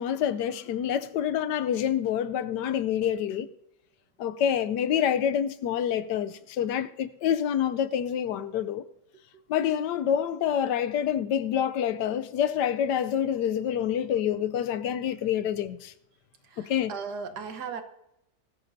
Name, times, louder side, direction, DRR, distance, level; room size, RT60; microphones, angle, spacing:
voice 1, 0.0-3.5 4.2-8.8 9.5-15.9 16.6-16.9, left 9 dB, 85° left, 1.3 m, -27 dB
voice 2, 16.5-17.8, right 5 dB, 75° right, 1.7 m, -37 dB
20.0 x 13.0 x 2.7 m
omnidirectional pair, 1.8 m